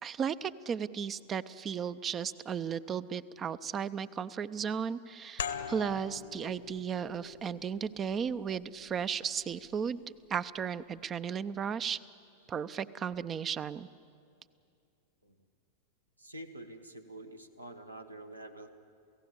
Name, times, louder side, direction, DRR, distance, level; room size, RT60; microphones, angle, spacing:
voice 1, 0.0-10.0 10.3-12.0 12.5-13.9, right 7 dB, 25° right, 15 dB, 0.6 m, -35 dB
sound 1, 5.4-10.7, left 7 dB, 65° left, 1.1 m, -44 dB
voice 2, 16.2-18.7, right 1 dB, 85° right, 6 dB, 1.5 m, -47 dB
29.5 x 16.0 x 8.3 m, 2.5 s
figure-of-eight pair, 90°, 0 cm